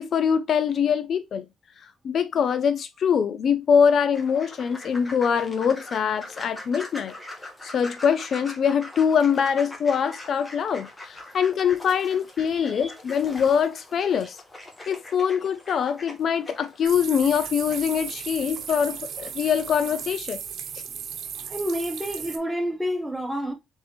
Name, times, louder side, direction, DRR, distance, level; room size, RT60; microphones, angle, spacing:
voice 1, 0.0-1.4 2.0-7.1 7.6-14.4 14.9-20.4, left 7 dB, 60° left, 0.5 m, -23 dB
sound 1, 4.1-20.2, left 1 dB, 20° left, 1.5 m, -43 dB
voice 2, 12.5-12.9 21.5-23.5, equal, 10° right, 1.4 m, -29 dB
sound 2, 16.8-22.4, right 8 dB, 70° right, 0.9 m, -36 dB
4.0 x 3.6 x 3.3 m
cardioid pair, 90°, 0 cm